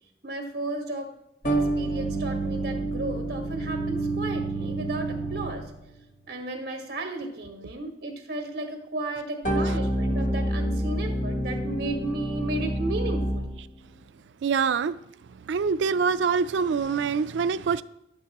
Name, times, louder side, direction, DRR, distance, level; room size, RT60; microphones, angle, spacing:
voice 1, 0.2-1.1 1.4-5.7 6.3-13.5 14.8-14.9, right 2 dB, 60° right, 1.5 m, -34 dB
sound 1, 1.4-5.9 9.4-13.6, right 1 dB, 45° left, 1.3 m, -28 dB
voice 2, 14.4-15.0 15.3-17.8, right 5 dB, 85° right, 0.4 m, -25 dB
11.0 x 8.5 x 3.0 m
head